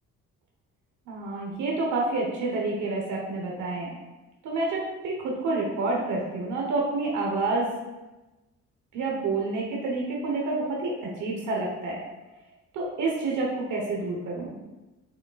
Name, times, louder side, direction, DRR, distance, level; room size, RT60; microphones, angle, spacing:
voice 1, 1.1-4.0 4.4-7.7 8.9-12.0 12.7-14.5, right 3 dB, 80° right, -3 dB, 1.2 m, -28 dB
6.5 x 5.9 x 2.4 m, 1.1 s
cardioid pair, 90°, 30 cm